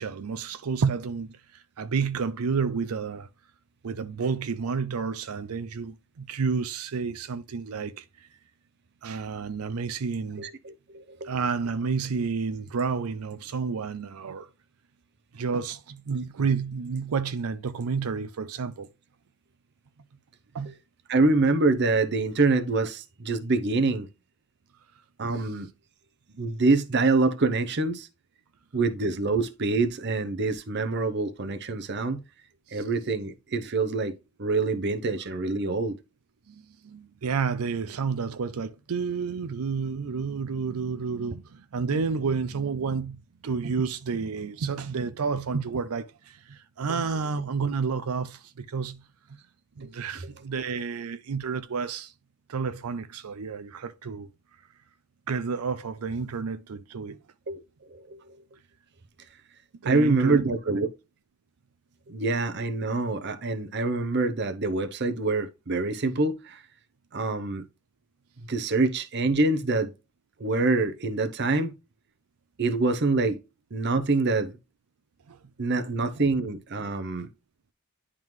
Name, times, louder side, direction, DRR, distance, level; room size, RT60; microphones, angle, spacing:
voice 1, 0.0-3.3 3.8-8.3 9.0-10.5 11.2-14.5 15.3-18.9 20.5-20.7 32.7-32.8 36.5-49.0 49.8-52.1 52.5-54.3 55.3-57.2 59.8-60.8 75.3-75.4, right 5 dB, 85° right, 0.5 m, -30 dB
voice 2, 10.4-11.3 20.7-20.8 21.1-24.1 25.2-25.7 26.3-28.1 28.7-32.2 32.7-34.1 34.4-36.0 49.8-49.9 50.2-50.3 57.5-57.6 57.9-58.4 59.8-60.9 62.1-66.6 67.1-67.6 68.4-69.9 70.4-71.7 72.6-73.4 73.7-74.6 75.6-77.3, right 3 dB, 50° right, 0.7 m, -25 dB
10.5 x 3.7 x 3.1 m
head